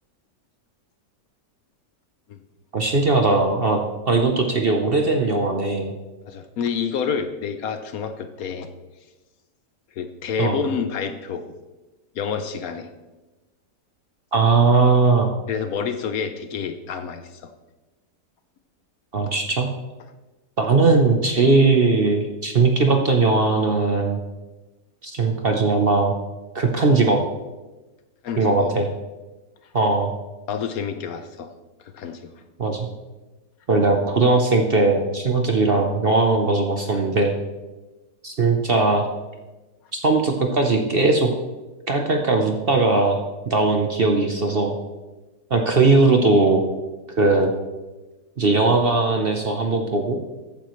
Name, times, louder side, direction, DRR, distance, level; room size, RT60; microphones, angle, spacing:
voice 1, 2.7-5.9 10.4-10.6 14.3-15.3 19.1-19.7 20.6-24.2 25.0-26.1 26.5-27.2 28.4-28.9 29.7-30.1 32.6-32.9 33.7-37.3 38.2-39.1 39.9-41.3 41.9-43.2 43.5-44.8 45.5-46.6 47.2-47.5 48.4-50.2, right 3 dB, 45° right, 3 dB, 0.9 m, -19 dB
voice 2, 6.3-8.7 10.0-11.5 12.2-12.9 15.5-17.5 28.2-28.7 30.5-31.5 31.8-32.3, left 6 dB, 65° left, 9 dB, 1.0 m, -28 dB
14.0 x 9.1 x 3.1 m, 1.2 s
omnidirectional pair, 1.8 m